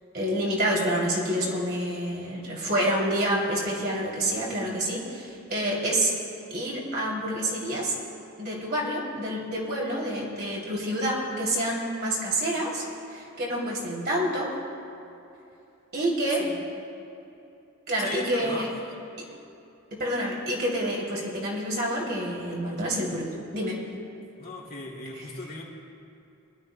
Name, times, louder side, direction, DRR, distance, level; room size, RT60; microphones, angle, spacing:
voice 1, 0.1-6.1 6.5-7.9 8.4-12.8 13.1-14.5 15.9-16.4 17.9-18.7 19.9-23.3 23.5-23.8, right 1 dB, 45° right, -4 dB, 2.8 m, -28 dB
voice 2, 18.0-18.7 24.4-25.6, left 2 dB, 40° left, -3 dB, 2.6 m, -36 dB
24.5 x 12.5 x 2.2 m, 2.8 s
head